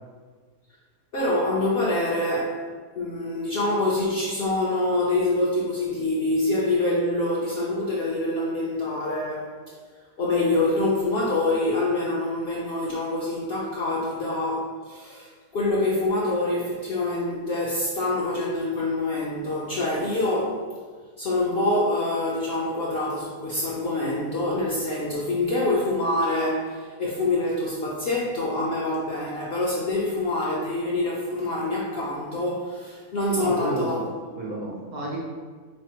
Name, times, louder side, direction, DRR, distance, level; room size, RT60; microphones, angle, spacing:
voice 1, 1.1-2.6 2.9-9.6 10.2-20.7 21.2-34.0 34.5-34.6, left 2 dB, 60° left, -5 dB, 0.6 m, -25 dB
voice 2, 33.4-34.0 34.4-35.2, right 1 dB, 85° right, -3 dB, 0.4 m, -32 dB
4.0 x 3.2 x 2.8 m, 1.5 s
omnidirectional pair, 1.6 m